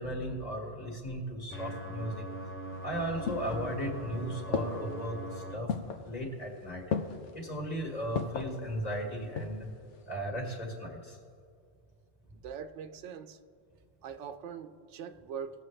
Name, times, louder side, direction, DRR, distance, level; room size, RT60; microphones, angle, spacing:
voice 1, 0.0-2.3 2.8-5.7 6.0-6.9 7.3-9.7 10.0-11.2, equal, 35° left, -3 dB, 1.9 m, -36 dB
sound 1, 1.5-5.6, right 1 dB, 15° left, 0.6 m, -41 dB
sound 2, 2.7-4.1 4.5-5.1 5.7-6.1 6.9-7.3 8.2-8.6 9.1-9.7 10.0-10.1, left 6 dB, 85° left, 1.0 m, -35 dB
voice 2, 12.3-13.4 14.0-15.6, right 7 dB, 90° right, 10 dB, 0.9 m, -42 dB
19.0 x 6.7 x 3.2 m, 2.3 s
omnidirectional pair, 1.2 m